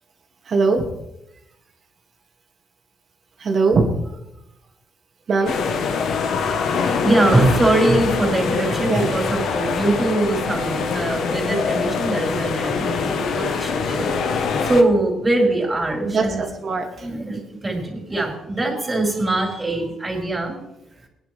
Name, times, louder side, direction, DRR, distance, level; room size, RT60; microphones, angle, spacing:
voice 1, 0.5-0.8 3.4-3.8 5.3-5.5 8.9-9.2 16.0-17.1, right 4 dB, 55° right, 1 dB, 2.4 m, -20 dB
sound 1, 5.5-14.8, left 5 dB, 70° left, 1.2 m, -24 dB
voice 2, 6.4-16.5 17.0-20.6, right 2 dB, 20° right, -1 dB, 4.6 m, -22 dB
19.0 x 10.0 x 3.5 m, 0.87 s
cardioid pair, 90°, 0 cm